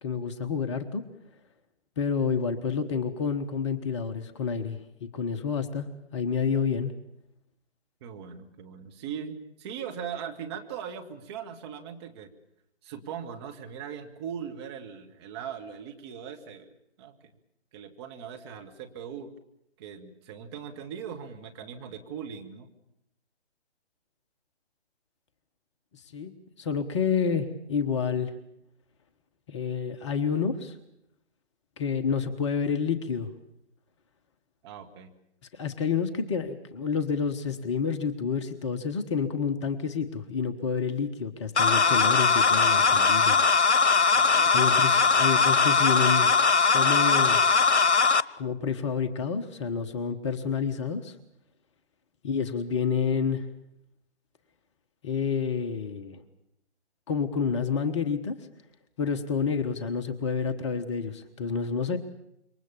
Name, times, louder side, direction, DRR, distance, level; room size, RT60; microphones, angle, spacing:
voice 1, 0.0-1.0 2.0-5.9 6.1-6.9 25.9-26.3 26.6-28.3 29.5-30.8 31.8-33.3 35.5-43.4 44.5-46.3 46.7-47.4 48.4-51.2 52.2-53.5 55.0-56.2 57.1-58.4 59.0-62.0, left 6 dB, 25° left, 8 dB, 1.2 m, -29 dB
voice 2, 8.0-12.3 12.8-16.7 17.0-17.2 17.7-19.3 19.8-22.7 34.6-35.1 44.1-45.1, right 7 dB, 25° right, 4 dB, 1.9 m, -40 dB
sound 1, 41.6-48.2, left 4 dB, 80° left, 1.0 m, -21 dB
27.0 x 23.5 x 7.1 m, 0.80 s
figure-of-eight pair, 140°, 34 cm